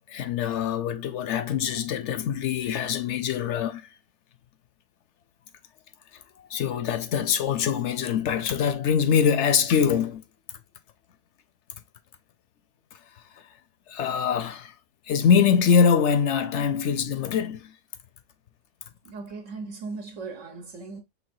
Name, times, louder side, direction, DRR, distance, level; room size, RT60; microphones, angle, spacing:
voice 1, 0.1-3.9 6.5-10.2 13.9-14.7 15.1-17.7, left 7 dB, 70° left, 0.8 m, -23 dB
voice 2, 19.0-21.0, right 4 dB, 70° right, 1.3 m, -38 dB
5.4 x 3.4 x 2.5 m
omnidirectional pair, 1.4 m